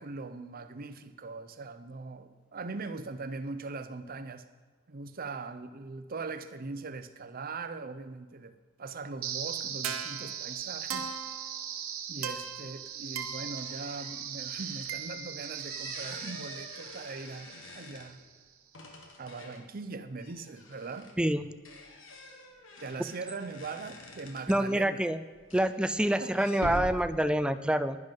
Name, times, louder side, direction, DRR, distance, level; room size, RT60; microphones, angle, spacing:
voice 1, 0.0-4.5 4.9-11.1 12.1-17.5 17.7-18.2 19.2-21.1 22.8-25.0 26.2-26.5, right 3 dB, 45° right, 11 dB, 0.6 m, -41 dB
sound 1, 9.2-18.2, right 8 dB, 90° right, 1.0 m, -38 dB
sound 2, 12.4-12.5 12.9-15.0 15.4-18.3 18.7-19.7 20.2-24.8 25.3-27.1, left 1 dB, 65° left, 1.5 m, -46 dB
voice 2, 24.5-25.2 25.5-28.0, right 1 dB, 5° right, 13 dB, 0.4 m, -27 dB
10.5 x 10.5 x 5.3 m, 1.4 s
head